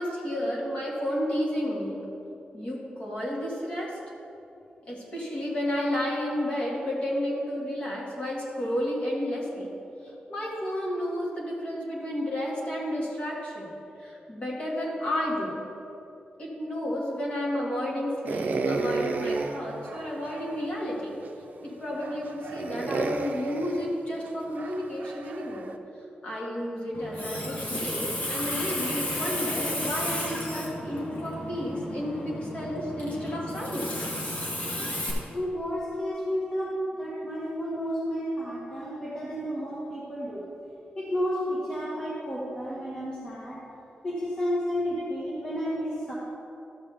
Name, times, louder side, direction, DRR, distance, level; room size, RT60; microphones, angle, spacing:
voice 1, 0.0-2.0 2.5-4.0 4.9-9.7 10.0-13.7 14.0-15.7 16.4-21.2 21.6-25.8 26.2-34.1 36.4-36.5 44.7-45.6, equal, 40° left, -4 dB, 1.9 m, -32 dB
sound 1, 18.3-20.6 21.3-21.4 21.9-25.8, right 3 dB, 60° right, 0.5 m, -32 dB
Water tap faucet, 26.9-35.1, left 1 dB, 60° left, 1.7 m, -33 dB
voice 2, 35.3-40.5 40.9-43.6 44.0-46.1, equal, 25° left, -7 dB, 1.5 m, -31 dB
13.0 x 7.4 x 3.4 m, 2.8 s
wide cardioid pair, 160°, 3 cm